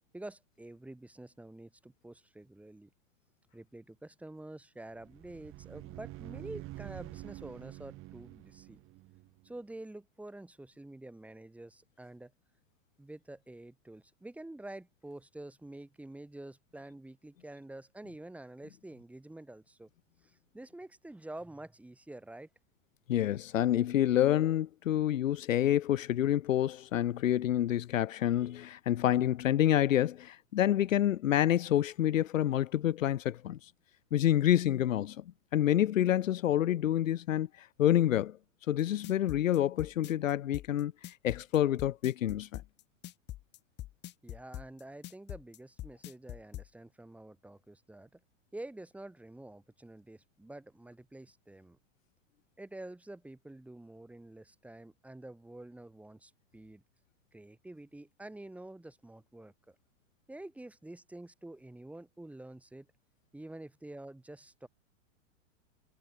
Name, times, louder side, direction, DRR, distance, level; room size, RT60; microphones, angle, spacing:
voice 1, 0.0-2.9 3.5-8.8 9.4-12.3 13.0-19.9 20.2-22.5 44.2-48.2 48.5-51.8 52.6-56.8 57.3-59.8 60.3-62.9 63.3-64.7, right 1 dB, 5° right, 7.3 m, -48 dB
sound 1, 4.9-9.6, right 19 dB, 35° right, 4.4 m, -47 dB
voice 2, 23.1-33.6 34.1-35.2 35.5-38.4 38.7-40.9 41.2-42.6, left 12 dB, 90° left, 1.4 m, -28 dB
sound 2, 38.8-46.7, left 14 dB, 25° left, 3.2 m, -43 dB
supercardioid pair, 145°, 38 cm